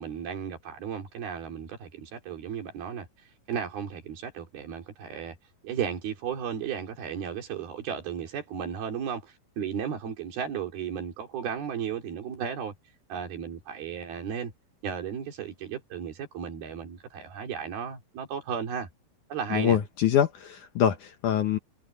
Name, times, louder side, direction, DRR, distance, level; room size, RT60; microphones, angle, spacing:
voice 1, 0.0-3.1 3.5-5.4 5.6-12.7 13.1-14.5 14.8-18.9 19.3-19.8, right 7 dB, 70° right, 5.0 m, -34 dB
voice 2, 19.5-21.6, left 9 dB, 65° left, 2.2 m, -24 dB
omnidirectional pair, 4.5 m